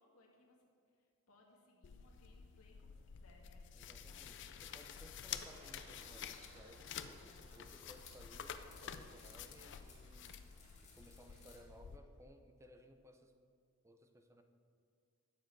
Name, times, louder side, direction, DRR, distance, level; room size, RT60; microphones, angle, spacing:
voice 1, 0.0-4.7, left 2 dB, 85° left, -1 dB, 1.8 m, -68 dB
sound 1, 1.8-12.0, left 8 dB, 60° left, 0.5 m, -50 dB
voice 2, 3.7-10.4 10.8-13.3 13.8-14.4, equal, 15° right, 6 dB, 0.6 m, -61 dB
sound 2, 4.4-11.7, right 1 dB, 60° right, 1.8 m, -65 dB
sound 3, 5.7-11.6, left 3 dB, 35° left, 1.9 m, -63 dB
10.0 x 7.1 x 4.7 m, 2.2 s
head